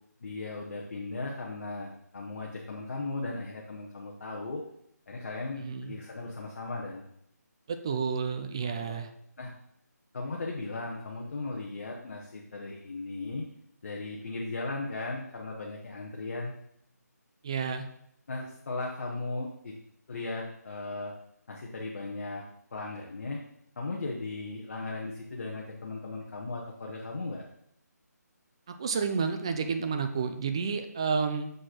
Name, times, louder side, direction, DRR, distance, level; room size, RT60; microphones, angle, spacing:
voice 1, 0.2-4.6 5.1-7.1 8.6-9.0 9.4-9.5 10.1-13.4 13.8-16.6 18.3-19.7 20.1-21.1 21.5-22.4 22.7-23.4 23.8-27.4, left 3 dB, 45° left, -1 dB, 1.1 m, -37 dB
voice 2, 5.5-5.9 7.7-9.1 17.4-17.8 28.7-31.5, right 5 dB, 15° right, 7 dB, 0.3 m, -30 dB
6.5 x 4.7 x 4.4 m, 0.72 s
figure-of-eight pair, 165°, 9 cm